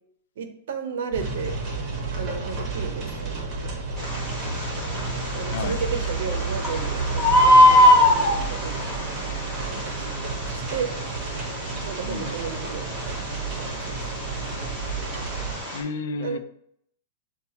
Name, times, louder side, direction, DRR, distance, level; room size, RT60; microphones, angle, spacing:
voice 1, 0.4-1.6 2.2-4.1 5.3-9.1 9.7-11.0 11.8-13.3 13.7-14.1 14.3-14.4 16.2-16.4, right 6 dB, 70° right, 7 dB, 0.6 m, -34 dB
sound 1, 1.1-15.6, right 4 dB, 25° right, 1.0 m, -31 dB
Bird, 4.0-15.8, left 1 dB, 5° left, 1.3 m, -23 dB
voice 2, 15.7-16.4, left 4 dB, 65° left, 10 dB, 0.4 m, -31 dB
6.5 x 2.3 x 2.8 m, 0.69 s
supercardioid pair, 160°, 0 cm